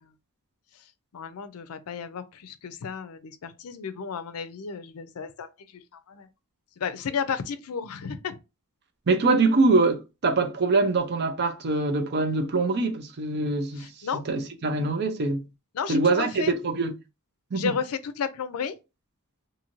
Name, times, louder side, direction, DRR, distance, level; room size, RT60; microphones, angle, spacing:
voice 1, 1.1-6.3 6.8-8.4 13.8-14.2 15.7-16.5 17.5-18.8, left 6 dB, 75° left, 0.4 m, -33 dB
voice 2, 9.1-13.9 14.3-15.5 15.9-16.9 17.5-17.7, right 3 dB, 50° right, 0.5 m, -24 dB
2.6 x 2.5 x 3.0 m
head